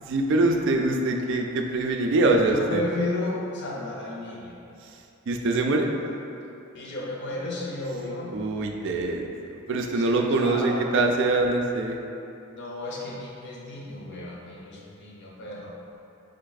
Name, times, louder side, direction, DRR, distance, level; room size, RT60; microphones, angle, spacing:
voice 1, 0.1-2.8 5.3-5.9 8.3-12.0, right 2 dB, 60° right, 2 dB, 0.4 m, -24 dB
voice 2, 2.5-4.6 6.7-8.3 9.9-11.0 12.5-15.7, left 2 dB, 55° left, -3 dB, 0.7 m, -33 dB
3.4 x 3.3 x 4.0 m, 2.8 s
head